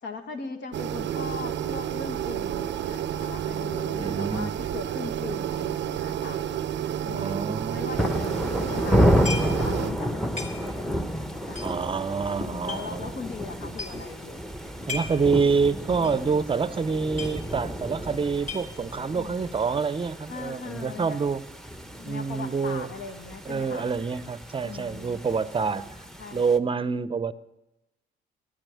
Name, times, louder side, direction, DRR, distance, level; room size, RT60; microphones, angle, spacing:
voice 1, 0.0-6.4 7.0-11.8 12.4-14.4 15.6-16.3 19.1-19.4 20.3-21.2 22.0-23.9 24.6-25.2 26.2-26.5, left 5 dB, 65° left, 5 dB, 1.8 m, -39 dB
sound 1, 0.7-9.9, right 10 dB, 65° right, 0.6 m, -30 dB
voice 2, 4.0-4.6 7.1-7.9 11.6-13.2 14.9-21.5 22.0-22.9 23.5-25.9 26.3-27.3, right 5 dB, 25° right, 16 dB, 0.7 m, -27 dB
sound 2, 8.0-26.6, equal, ahead, 0.9 m, -30 dB
sound 3, 9.2-9.7 9.9-10.0 10.4-10.9 11.5-12.8 13.4-13.5 13.7-14.1 14.6-15.3 15.6-15.7 16.0-16.3 16.5-16.6 16.9-17.8 18.1-19.0, left 4 dB, 35° left, 3.1 m, -36 dB
11.0 x 9.0 x 9.8 m, 0.99 s
cardioid pair, 90°, 20 cm